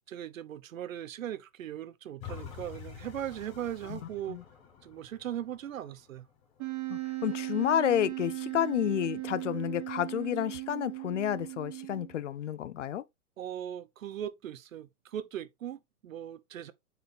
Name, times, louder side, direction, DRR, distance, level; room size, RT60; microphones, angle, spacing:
voice 1, 0.1-4.4 4.8-6.3 13.4-16.7, right 10 dB, 60° right, 0.9 m, -39 dB
sound 1, 2.2-7.2 7.7-7.8, left 8 dB, 10° left, 0.8 m, -48 dB
Wind instrument woodwind instrument, 6.6-12.3, right 21 dB, 20° right, 1.0 m, -37 dB
voice 2, 6.9-13.0, left 11 dB, 55° left, 0.5 m, -30 dB
7.9 x 4.3 x 3.3 m
hypercardioid pair, 165°, 44 cm